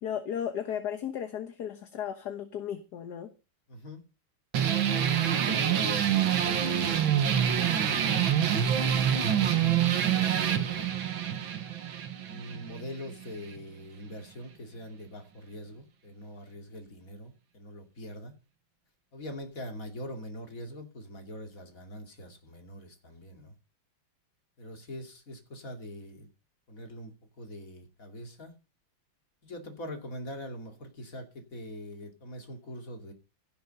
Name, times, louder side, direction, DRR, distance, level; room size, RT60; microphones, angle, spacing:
voice 1, 0.0-3.3, left 9 dB, 55° left, 1.6 m, -35 dB
voice 2, 3.7-4.0 5.3-8.9 10.0-11.5 12.3-18.3 19.1-23.5 24.6-26.3 26.7-28.5 29.4-33.1, equal, 40° left, 3.0 m, -43 dB
sound 1, 4.5-13.6, right 9 dB, 65° right, 2.1 m, -26 dB
16.0 x 6.8 x 6.9 m
omnidirectional pair, 2.4 m